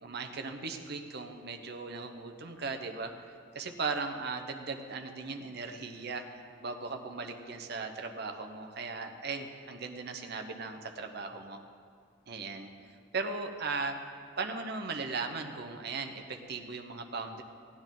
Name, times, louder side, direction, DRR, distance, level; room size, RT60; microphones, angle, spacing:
voice 1, 0.0-3.1 3.5-11.6 12.3-12.7 13.1-14.0 14.4-17.4, right 4 dB, 55° right, 5 dB, 0.9 m, -38 dB
16.5 x 9.6 x 3.8 m, 2.2 s
head